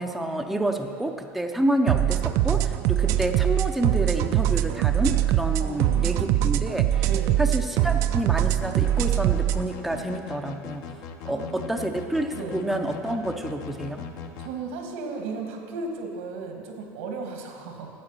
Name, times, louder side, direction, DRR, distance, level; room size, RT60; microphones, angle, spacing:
voice 1, 0.0-7.1 7.4-10.9 11.2-14.0, right 1 dB, ahead, 4 dB, 0.5 m, -28 dB
sound 1, 1.9-9.6, right 12 dB, 55° right, 0.4 m, -23 dB
voice 2, 5.6-6.6 7.0-7.4 11.3-12.0 12.4-12.6 14.4-17.9, right 4 dB, 90° right, 3 dB, 1.8 m, -35 dB
sound 2, 8.6-14.5, left 6 dB, 60° left, 0.8 m, -39 dB
9.6 x 7.5 x 7.3 m, 2.4 s
cardioid pair, 150°, 7 cm